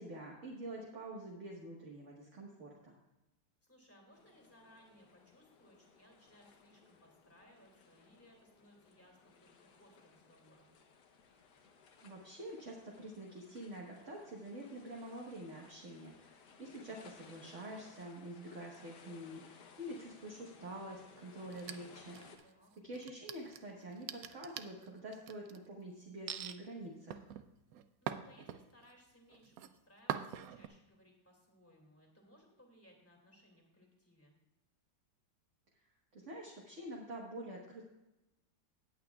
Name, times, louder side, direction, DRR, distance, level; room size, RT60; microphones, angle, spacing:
voice 1, 0.0-2.9 12.0-22.5 22.8-27.3 36.1-37.9, right 1 dB, 40° right, -2 dB, 1.5 m, -47 dB
voice 2, 3.6-10.7 22.4-22.7 28.0-34.3, equal, 5° left, 0 dB, 2.2 m, -64 dB
sound 1, 4.1-22.4, left 5 dB, 65° left, 1.5 m, -61 dB
sound 2, 21.5-22.5 22.9-25.6 26.3-26.6 27.1-28.9 29.3-29.7 30.1-30.7, right 10 dB, 80° right, 0.8 m, -43 dB
17.5 x 8.6 x 2.3 m, 0.98 s
omnidirectional pair, 2.1 m